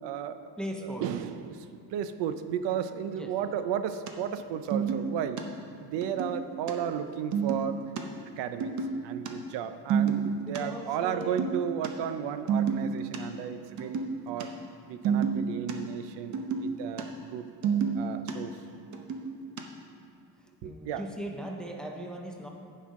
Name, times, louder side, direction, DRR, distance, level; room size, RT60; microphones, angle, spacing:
voice 1, 0.0-0.5 0.8-5.4 5.8-7.8 8.4-8.7 9.0-14.5 14.9-16.4 16.6-17.5 17.9-18.6 20.6-21.0, right 9 dB, 80° right, 11 dB, 0.6 m, -34 dB
voice 2, 0.6-1.0 3.1-3.3 10.4-11.4 14.2-14.4 20.6-22.5, equal, ahead, 1 dB, 0.5 m, -39 dB
sound 1, 4.1-4.2 4.4-4.5 4.7-5.4 6.0-6.7 7.0-7.1 7.3-8.0 8.6-9.3 9.6-10.6 11.1-11.9 12.1-12.2 12.5-13.2 13.6-14.4 14.7-15.7 16.2-17.0 17.3-18.3 18.8-19.6, right 6 dB, 45° right, 0.8 m, -29 dB
14.5 x 5.6 x 3.7 m, 2.5 s
cardioid pair, 160°, 42 cm